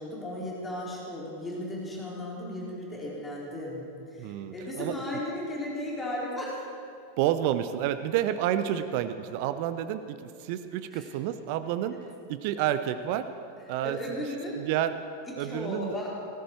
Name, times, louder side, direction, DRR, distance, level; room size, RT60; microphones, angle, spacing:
voice 1, 0.0-6.7 10.9-11.1 13.8-14.6 15.3-16.1, left 1 dB, 15° left, -5 dB, 4.1 m, -35 dB
voice 2, 4.2-5.0 7.2-12.0 12.3-13.3 13.7-14.0 14.6-15.0 15.4-16.0, right 11 dB, 45° right, 11 dB, 0.6 m, -29 dB
18.0 x 14.5 x 4.6 m, 2.5 s
figure-of-eight pair, 90°, 0 cm